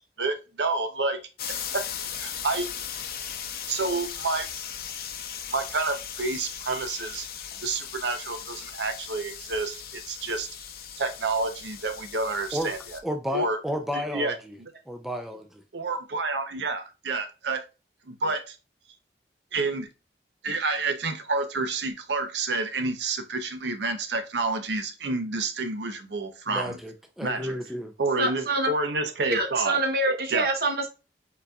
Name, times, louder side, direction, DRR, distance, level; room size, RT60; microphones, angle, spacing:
voice 1, 0.2-1.2 1.7-1.9 2.1-2.7 3.7-4.5 5.5-7.3 7.6-10.5 11.0-12.8 13.3-13.6 13.9-14.7 15.7-17.6 18.1-18.6 19.5-19.9 20.4-26.8 27.2-27.6 28.0-29.8 30.3-30.5, right 3 dB, 80° right, 0.7 m, -29 dB
sound 1, 1.4-13.0, left 8 dB, 55° left, 0.6 m, -38 dB
voice 2, 13.0-14.6 14.9-15.6 26.5-27.9, equal, ahead, 0.4 m, -32 dB
voice 3, 28.2-28.7 29.2-30.9, right 2 dB, 55° right, 1.0 m, -26 dB
5.3 x 4.0 x 2.3 m
head